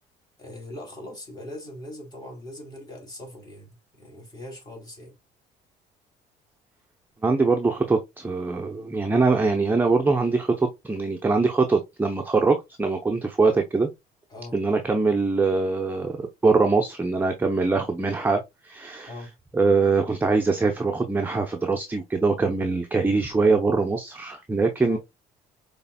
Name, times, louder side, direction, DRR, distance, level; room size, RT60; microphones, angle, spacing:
voice 1, 0.4-5.1 14.3-14.6 19.1-19.3 24.9-25.0, left 1 dB, 25° left, 3.2 m, -41 dB
voice 2, 7.2-13.9 14.5-19.1 19.5-25.0, right 3 dB, 10° right, 0.7 m, -23 dB
5.5 x 3.5 x 2.2 m
cardioid pair, 110°, 17 cm